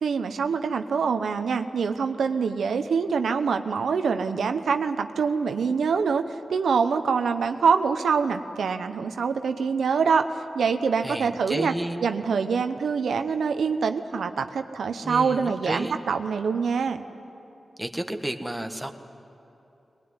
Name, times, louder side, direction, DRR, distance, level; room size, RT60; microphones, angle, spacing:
voice 1, 0.0-10.3 10.5-11.7 12.0-17.0, right 5 dB, 85° right, 8 dB, 0.9 m, -25 dB
voice 2, 11.0-12.1 15.0-16.0 17.8-18.9, right 1 dB, 10° right, 5 dB, 1.5 m, -32 dB
20.5 x 19.5 x 9.8 m, 2.9 s
cardioid pair, 70°, 0 cm